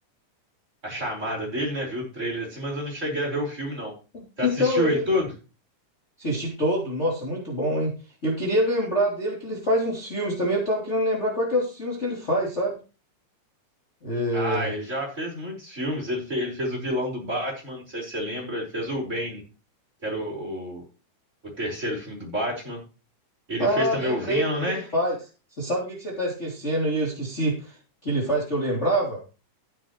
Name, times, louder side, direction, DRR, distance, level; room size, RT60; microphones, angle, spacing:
voice 1, 0.8-3.9 4.4-5.3 14.3-19.4 20.0-20.8 21.6-22.8 23.5-24.9, equal, 20° right, -1 dB, 5.3 m, -29 dB
voice 2, 4.1-5.0 6.2-7.9 8.2-12.8 14.0-14.7 23.6-25.1 25.6-27.8 28.0-29.2, equal, 20° left, -4 dB, 3.4 m, -25 dB
15.0 x 9.7 x 3.2 m, 0.33 s
omnidirectional pair, 3.6 m